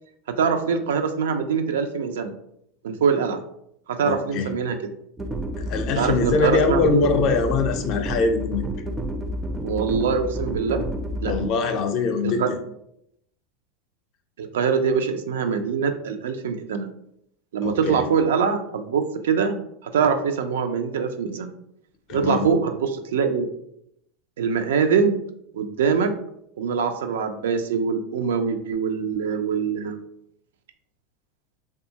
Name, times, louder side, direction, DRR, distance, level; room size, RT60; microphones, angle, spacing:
voice 1, 0.3-2.3 2.8-3.4 3.9-4.8 6.0-7.1 9.6-10.8 11.2-11.3 12.2-12.5 14.4-16.9 17.5-21.5 22.1-23.5 24.4-25.2 25.5-26.1 26.6-29.9, right 6 dB, 90° right, 8 dB, 0.3 m, -23 dB
voice 2, 4.0-4.5 5.6-8.6 11.2-12.6 17.6-18.0 22.1-22.5, left 4 dB, 50° left, 7 dB, 0.4 m, -23 dB
sound 1, 5.2-11.5, right 1 dB, 15° right, 0.3 m, -30 dB
2.6 x 2.2 x 2.8 m, 0.75 s
supercardioid pair, 120°, 0 cm